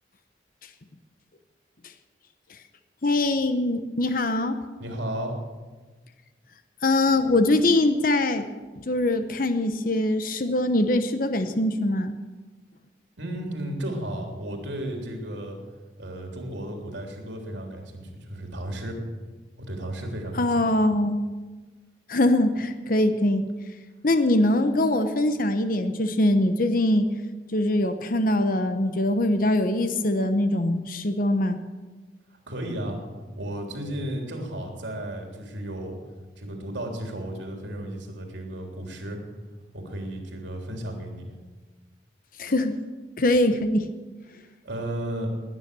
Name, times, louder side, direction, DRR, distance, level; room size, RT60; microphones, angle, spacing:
voice 1, 3.0-4.6 6.8-8.4 8.8-12.1 20.4-21.2 22.1-23.4 24.0-27.1 27.5-31.6 42.4-42.8 43.2-43.9, left 1 dB, 50° left, 9 dB, 0.9 m, -23 dB
voice 2, 4.8-5.4 13.2-15.6 16.0-19.0 19.7-20.7 32.5-33.0 33.4-36.0 36.4-39.2 39.7-41.4 44.6-45.3, right 1 dB, 80° right, 2 dB, 3.4 m, -34 dB
20.0 x 9.8 x 6.9 m, 1.3 s
head